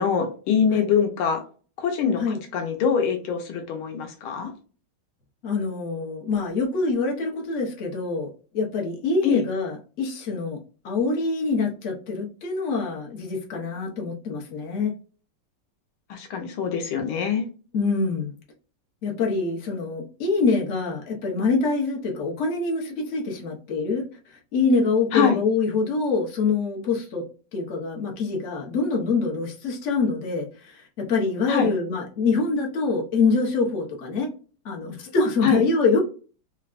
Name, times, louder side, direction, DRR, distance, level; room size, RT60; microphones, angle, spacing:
voice 1, 0.0-1.4 1.8-4.5 9.2-9.4 16.1-17.4 25.1-25.4 31.5-31.7 35.4-35.6, left 7 dB, 75° left, 4 dB, 1.5 m, -24 dB
voice 2, 5.4-10.6 10.8-14.9 17.7-18.3 19.0-24.0 24.5-27.2 27.5-30.5 30.7-34.3 34.6-36.0, left 4 dB, 55° left, 0 dB, 0.8 m, -25 dB
4.7 x 2.1 x 2.4 m, 0.38 s
omnidirectional pair, 2.4 m